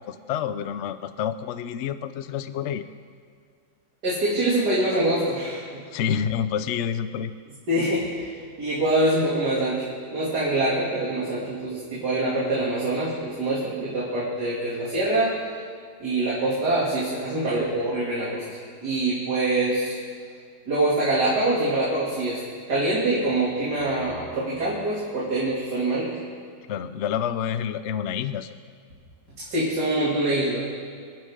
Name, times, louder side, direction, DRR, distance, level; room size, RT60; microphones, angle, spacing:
voice 1, 0.0-2.8 5.9-7.3 26.7-28.5, left 8 dB, 65° left, 12 dB, 0.7 m, -28 dB
voice 2, 4.0-5.7 7.7-8.3 8.6-9.9 10.1-15.3 16.0-19.9 20.7-22.4 22.7-26.2 29.4-30.7, right 2 dB, 90° right, -7 dB, 3.2 m, -24 dB
27.0 x 10.5 x 3.7 m, 2.1 s
omnidirectional pair, 1.7 m